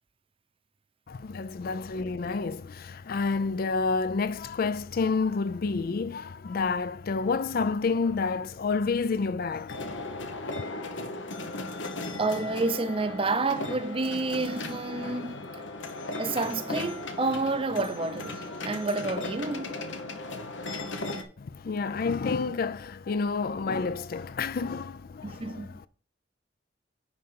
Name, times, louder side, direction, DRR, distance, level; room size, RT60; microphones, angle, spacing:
voice 1, 1.1-9.9 10.2-10.6 21.4-25.9, left 4 dB, 50° left, 0.4 m, -29 dB
sound 1, 9.7-21.2, left 2 dB, 80° left, 1.2 m, -36 dB
voice 2, 12.2-15.4 16.2-19.8 25.2-25.9, right 3 dB, 30° right, 0.7 m, -29 dB
10.5 x 3.7 x 5.6 m
head